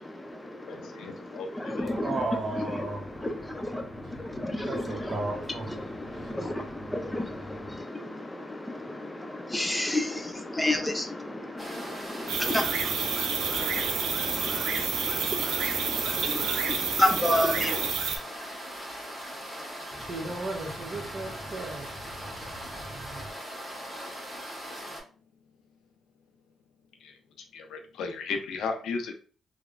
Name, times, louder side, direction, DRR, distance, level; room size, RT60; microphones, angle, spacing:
voice 1, 0.0-2.1 2.6-5.2 5.8-17.9, left 1 dB, 15° left, 0.5 m, -32 dB
voice 2, 0.7-1.9 27.0-27.2 27.5-29.1, left 4 dB, 80° left, 0.4 m, -35 dB
voice 3, 1.8-7.8 19.9-23.3, right 2 dB, 50° right, 0.8 m, -37 dB
sound 1, 11.6-25.0, equal, 15° right, 1.4 m, -40 dB
sound 2, 12.3-18.2, right 6 dB, 85° right, 0.4 m, -29 dB
3.1 x 2.0 x 2.4 m
cardioid pair, 70°, 0 cm